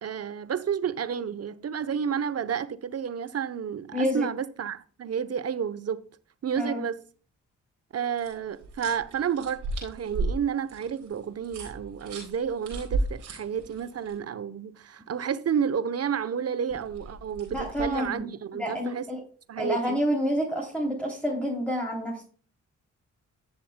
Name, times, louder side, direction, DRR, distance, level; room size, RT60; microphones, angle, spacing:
voice 1, 0.0-6.0 6.4-7.0 7.9-19.1 19.5-20.0, right 7 dB, 50° right, 0.9 m, -31 dB
voice 2, 3.9-4.3 6.5-6.8 17.5-18.3 18.6-19.2 19.6-22.2, equal, 5° left, 3.1 m, -28 dB
sound 1, 8.2-14.1 16.7-18.2, right 2 dB, 90° right, 4.0 m, -35 dB
14.5 x 6.9 x 2.2 m
supercardioid pair, 50°, 32 cm